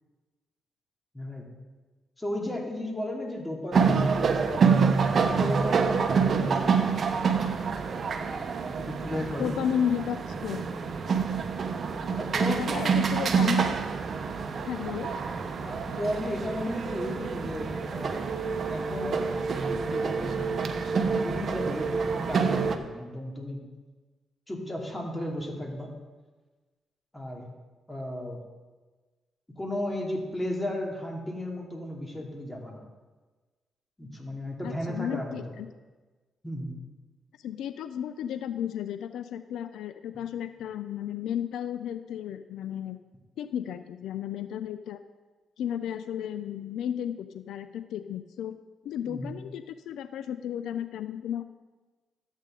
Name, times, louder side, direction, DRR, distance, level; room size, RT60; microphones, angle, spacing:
voice 1, 1.1-1.5 2.2-4.7 5.3-7.0 8.8-9.5 11.7-13.0 15.6-18.3 18.7-19.3 19.7-23.6 24.5-25.9 27.1-27.5 27.9-28.4 29.6-32.8 34.0-35.5 36.4-36.7 49.1-49.3, left 1 dB, 15° left, 0 dB, 2.6 m, -35 dB
sound 1, 3.7-22.8, right 5 dB, 55° right, 0.9 m, -27 dB
voice 2, 9.4-10.6 12.5-13.8 14.7-15.1 34.6-35.7 37.4-43.0 43.4-45.0 45.6-48.6 48.8-51.4, left 9 dB, 80° left, 11 dB, 0.4 m, -33 dB
13.0 x 8.2 x 3.8 m, 1.3 s
supercardioid pair, 70°, 0 cm